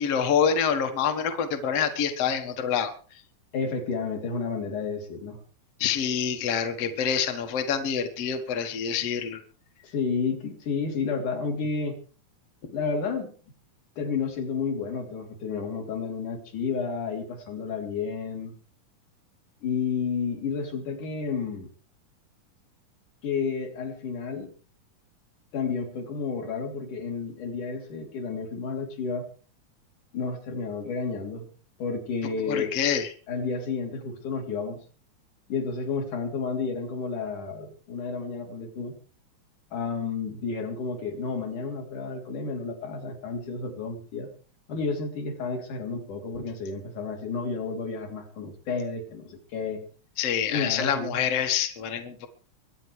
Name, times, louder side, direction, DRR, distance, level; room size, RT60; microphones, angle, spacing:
voice 1, 0.0-3.2 5.8-9.4 32.4-33.1 50.2-52.3, left 7 dB, 55° left, 6 dB, 2.2 m, -26 dB
voice 2, 3.5-5.4 9.8-12.0 12.7-13.3 14.0-18.5 19.6-21.7 23.2-24.5 25.5-29.3 30.1-31.5 31.8-32.7 33.3-34.8 35.5-38.9 39.7-44.3 44.7-49.8 50.5-51.2, left 5 dB, 75° left, 2 dB, 4.6 m, -31 dB
24.0 x 9.3 x 4.7 m, 0.41 s
omnidirectional pair, 3.6 m